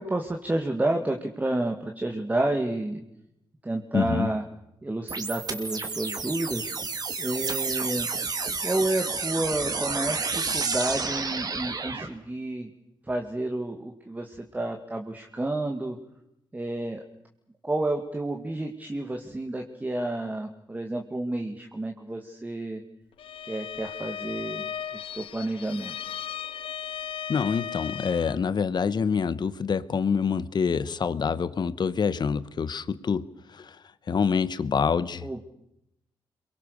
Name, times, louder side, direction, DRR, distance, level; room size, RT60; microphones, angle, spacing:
voice 1, 0.0-3.0 3.6-4.4 4.8-6.7 7.2-8.1 8.6-12.7 13.0-16.0 16.5-17.0 17.6-22.8 23.5-25.9 35.2-35.4, right 2 dB, 20° right, 3 dB, 2.3 m, -30 dB
voice 2, 3.9-4.3 27.3-33.8 34.1-35.4, left 6 dB, 55° left, 16 dB, 1.2 m, -26 dB
sound 1, 5.1-12.1, right 4 dB, 50° right, 3.1 m, -30 dB
Bowed string instrument, 23.2-28.5, left 8 dB, 85° left, 0.8 m, -36 dB
27.0 x 23.0 x 6.7 m, 0.83 s
cardioid pair, 85°, 9 cm